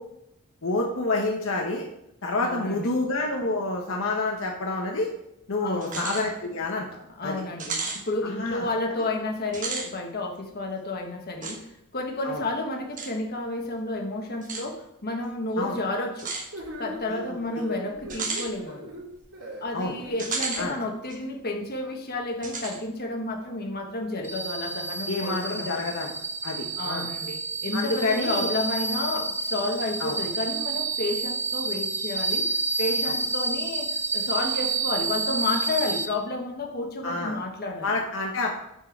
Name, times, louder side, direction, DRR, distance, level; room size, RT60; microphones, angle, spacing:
voice 1, 0.6-1.9 2.2-5.1 5.5-6.9 7.2-7.4 8.2-8.7 12.2-12.4 15.6-15.8 17.1-17.2 19.7-19.9 20.6-20.8 25.1-26.1 26.4-27.1 27.7-28.5 30.0-30.2 33.1-33.2 37.0-37.4 37.8-38.5, left 2 dB, 60° left, 0 dB, 1.0 m, -28 dB
voice 2, 2.4-2.9 5.6-6.1 7.2-16.3 16.8-18.9 19.6-25.9 26.8-32.5 32.8-38.0, left 2 dB, 45° left, 2 dB, 1.4 m, -31 dB
sound 1, 5.8-6.3 6.7-6.8 7.6-8.0 9.4-9.9 11.4-11.6 13.0-13.1 14.4-14.7 16.2-16.5 18.1-18.5 20.2-20.7 21.1-21.2 22.4-22.8, right 4 dB, 35° right, 1.3 m, -32 dB
sound 2, 16.5-20.7, equal, 75° right, 2.8 m, -39 dB
sound 3, 24.2-36.1, right 3 dB, 10° right, 0.7 m, -29 dB
9.2 x 4.5 x 6.0 m, 0.82 s
head